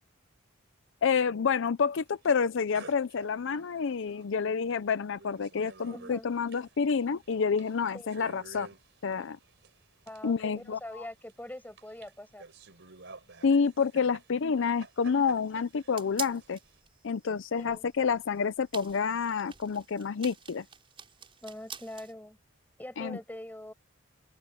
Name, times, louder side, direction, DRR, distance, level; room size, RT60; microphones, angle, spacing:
voice 1, 1.0-8.7 9.0-9.4 10.2-11.0 13.4-16.6 17.0-20.6 23.0-23.2, left 6 dB, 65° left, 0.5 m, -28 dB
sound 1, 2.2-2.4 2.7-4.4 4.7-4.8 5.0-16.8, right 4 dB, 60° right, 4.3 m, -53 dB
voice 2, 5.9-6.3 7.9-8.1 10.1-12.4 17.6-17.8 21.4-22.4 22.8-23.7, left 1 dB, 10° left, 6.1 m, -43 dB
sound 2, 14.6-22.1, right 6 dB, 25° right, 5.3 m, -47 dB
open air
head